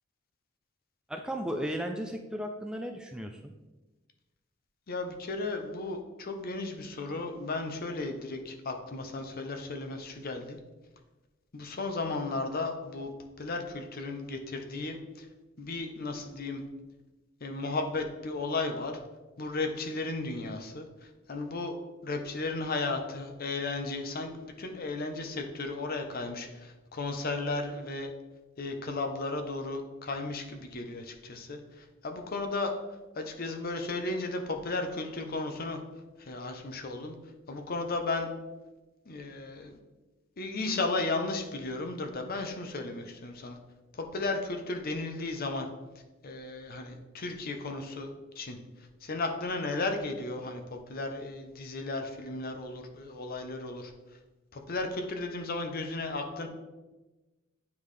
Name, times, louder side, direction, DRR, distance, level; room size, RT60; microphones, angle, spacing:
voice 1, 1.1-3.5, equal, 5° right, 4 dB, 0.3 m, -35 dB
voice 2, 4.9-10.6 11.5-13.1 13.4-15.3 15.6-16.6 17.4-19.0 19.4-20.9 21.3-21.7 22.0-28.1 28.6-32.7 33.2-35.8 36.2-37.1 37.5-38.3 39.1-39.8 40.4-43.6 43.9-45.7 46.2-48.1 48.4-48.6 49.0-53.9 54.5-56.5, left 3 dB, 50° left, 5 dB, 0.7 m, -34 dB
9.4 x 3.5 x 3.2 m, 1.1 s
head